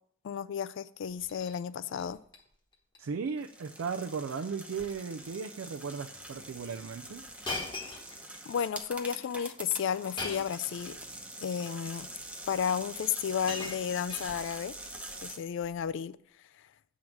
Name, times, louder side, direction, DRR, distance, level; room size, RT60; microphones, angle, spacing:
voice 1, 0.2-2.2 8.5-11.0 11.4-12.1 12.5-14.7 15.2-16.2, left 8 dB, 65° left, 0.3 m, -33 dB
Shatter, 1.1-1.6 1.9-2.4 2.7-3.0 3.3-3.4 4.2-4.5 4.8-5.1 5.8-5.9 7.4-8.6 10.2-10.7 11.7-11.8 12.8-12.9 13.2-14.7 15.6-15.9, left 2 dB, 25° left, 1.0 m, -41 dB
voice 2, 3.0-7.2, right 5 dB, 80° right, 0.4 m, -36 dB
sound 1, 3.4-15.4, right 1 dB, 5° right, 0.7 m, -45 dB
7.7 x 3.7 x 5.9 m
head